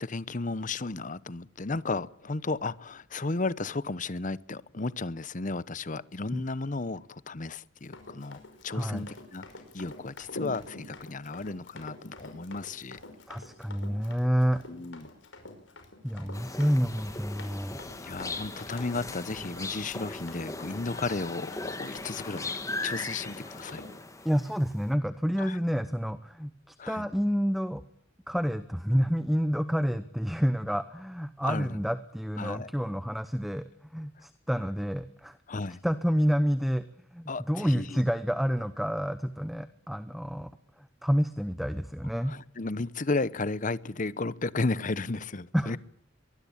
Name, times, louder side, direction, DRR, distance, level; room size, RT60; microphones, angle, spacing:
voice 1, 0.0-13.0 14.7-15.1 18.0-22.5 22.8-23.8 25.4-25.6 26.8-27.1 31.4-31.8 32.4-32.7 35.5-35.8 37.3-38.0 42.2-45.8, left 3 dB, 40° left, 0.9 m, -34 dB
Run, 7.8-23.9, left 2 dB, 80° left, 5.6 m, -47 dB
voice 2, 8.7-9.0 13.3-14.6 16.0-17.8 24.2-27.8 28.3-35.4 35.8-36.8 37.1-40.5 40.8-42.3 45.5-45.8, equal, ahead, 0.9 m, -29 dB
sound 1, 16.3-24.7, left 2 dB, 15° left, 2.0 m, -39 dB
23.5 x 20.5 x 8.8 m
head